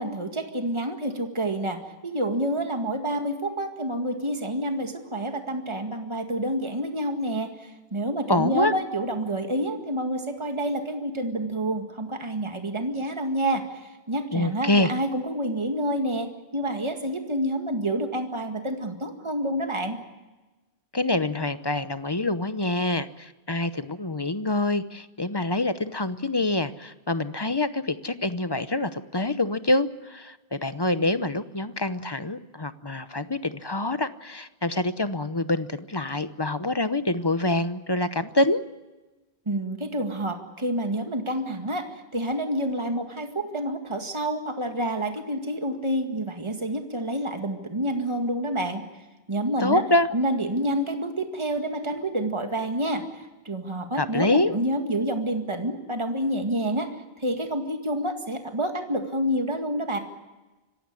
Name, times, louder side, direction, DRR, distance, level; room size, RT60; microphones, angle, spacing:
voice 1, 0.0-20.0 39.5-48.8 49.3-49.8 50.1-60.0, right 1 dB, 30° right, 5 dB, 2.0 m, -28 dB
voice 2, 8.3-8.7 14.3-14.9 20.9-38.6 49.6-50.1 54.0-54.5, left 2 dB, 25° left, 13 dB, 0.9 m, -26 dB
26.0 x 16.0 x 9.8 m, 1.1 s
omnidirectional pair, 1.0 m